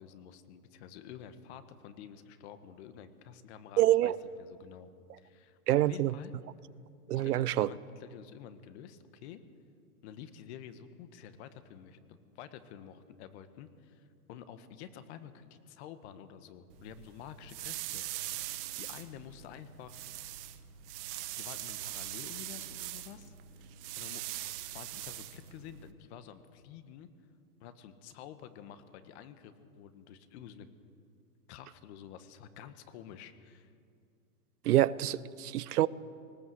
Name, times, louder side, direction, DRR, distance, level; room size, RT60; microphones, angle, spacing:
voice 1, 0.0-4.1 4.4-4.9 5.2-6.3 7.1-9.4 10.0-20.0 21.0-23.3 24.0-24.2 24.7-27.1 27.6-30.7 31.5-33.7, left 9 dB, 45° left, 11 dB, 1.4 m, -49 dB
voice 2, 3.8-4.1 5.7-6.1 7.1-7.7 34.6-35.9, right 14 dB, 75° right, 20 dB, 0.8 m, -26 dB
sound 1, 16.7-25.9, right 14 dB, 35° right, 1.2 m, -42 dB
19.5 x 17.5 x 7.9 m, 2.4 s
hypercardioid pair, 145°, 46 cm